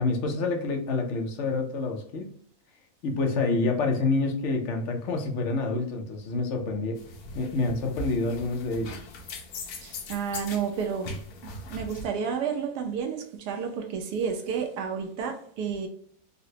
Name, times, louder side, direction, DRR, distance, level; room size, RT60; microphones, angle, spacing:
voice 1, 0.0-2.3 3.0-7.0 7.3-9.1, left 3 dB, 60° left, 0.8 m, -27 dB
sound 1, 7.0-12.1, left 1 dB, 75° left, 1.1 m, -40 dB
voice 2, 9.8-11.2 11.4-15.9, right 6 dB, 90° right, 1.2 m, -31 dB
3.9 x 2.1 x 2.7 m
omnidirectional pair, 1.7 m